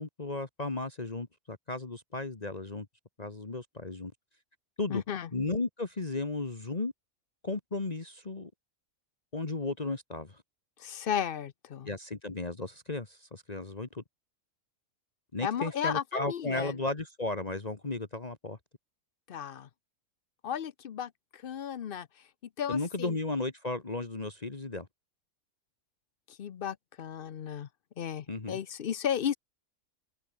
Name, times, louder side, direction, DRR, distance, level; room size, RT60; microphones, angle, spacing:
voice 1, 0.0-2.9 3.2-4.1 4.8-5.0 5.3-6.9 7.4-8.5 9.3-10.4 11.8-14.0 15.3-18.6 22.7-24.9 28.3-28.6, left 2 dB, 30° left, 1.6 m, -35 dB
voice 2, 4.9-5.3 10.8-11.9 15.4-16.7 19.3-19.7 20.4-22.1 22.6-23.1 26.3-27.7 28.0-29.4, left 9 dB, 50° left, 0.8 m, -34 dB
omnidirectional pair, 1.4 m